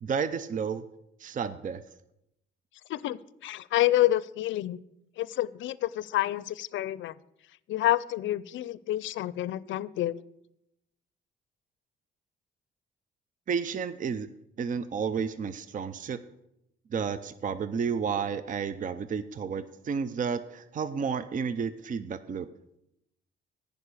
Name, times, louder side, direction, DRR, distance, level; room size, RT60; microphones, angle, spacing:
voice 1, 0.0-0.8 1.2-1.8 13.5-14.3 14.6-16.2 16.9-22.5, right 6 dB, 40° right, 13 dB, 0.6 m, -31 dB
voice 2, 2.9-4.8 5.2-7.1 7.7-10.2, left 14 dB, 75° left, 20 dB, 0.5 m, -28 dB
9.9 x 5.3 x 8.2 m, 0.81 s
cardioid pair, 90°, 20 cm